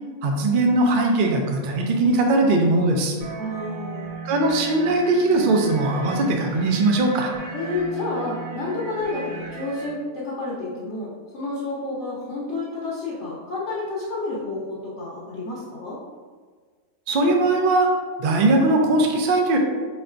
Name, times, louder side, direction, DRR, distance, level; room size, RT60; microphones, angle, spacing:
voice 1, 0.2-3.2 4.2-7.3 17.1-17.9 18.2-19.6, right 2 dB, 70° right, 1 dB, 0.4 m, -20 dB
sound 1, 3.2-9.9, right 4 dB, 55° right, 1.3 m, -36 dB
voice 2, 3.4-4.2 7.5-16.0, left 2 dB, 60° left, -8 dB, 1.0 m, -30 dB
3.1 x 2.5 x 4.4 m, 1.5 s
omnidirectional pair, 1.5 m